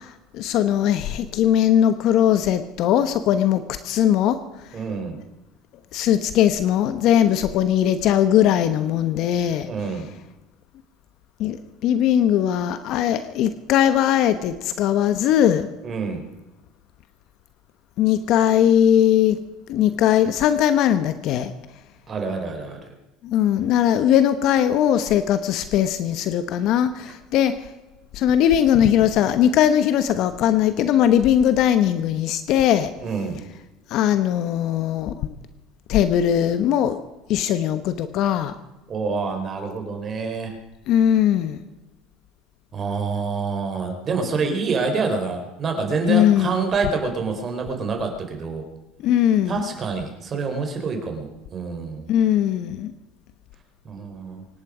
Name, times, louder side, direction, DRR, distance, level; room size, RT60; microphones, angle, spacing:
voice 1, 0.0-4.4 5.9-9.7 11.4-11.6 11.8-15.7 18.0-19.4 19.7-21.5 23.2-27.6 28.1-32.9 33.9-35.3 35.9-37.0 37.3-38.5 40.9-41.6 46.1-46.5 49.0-49.7 52.1-52.9, left 10 dB, 60° left, 11 dB, 1.1 m, -19 dB
voice 2, 4.7-5.2 9.6-10.1 15.8-16.3 22.1-22.9 33.0-33.4 38.9-40.6 42.7-48.6 49.5-52.1 53.8-54.5, right 4 dB, 35° right, 4 dB, 4.3 m, -27 dB
25.0 x 11.0 x 5.1 m, 1.1 s
supercardioid pair, 105°, 0 cm